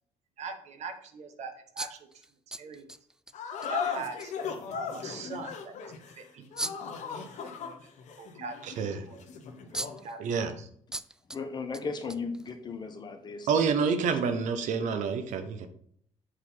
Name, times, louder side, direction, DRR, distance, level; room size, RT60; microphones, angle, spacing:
voice 1, 0.4-2.2 2.6-2.9 3.7-4.3 4.7-7.5 8.2-8.6 9.1-9.3 9.7-10.3 10.6-10.7, right 4 dB, 65° right, 7 dB, 1.3 m, -42 dB
sound 1, 1.8-3.3 3.6-3.7 4.2-4.3 6.6-7.0 9.3-9.4 9.7-10.1 10.9-11.4 11.7-12.7, right 1 dB, 5° right, 0.3 m, -38 dB
sound 2, 3.3-10.1, left 6 dB, 70° left, 1.3 m, -37 dB
voice 2, 10.2-10.5 13.5-15.7, right 5 dB, 80° right, 8 dB, 1.1 m, -27 dB
voice 3, 11.3-13.7 14.0-14.2, left 4 dB, 35° left, 6 dB, 1.2 m, -36 dB
7.9 x 4.2 x 5.7 m, 0.64 s
cardioid pair, 135°, 13 cm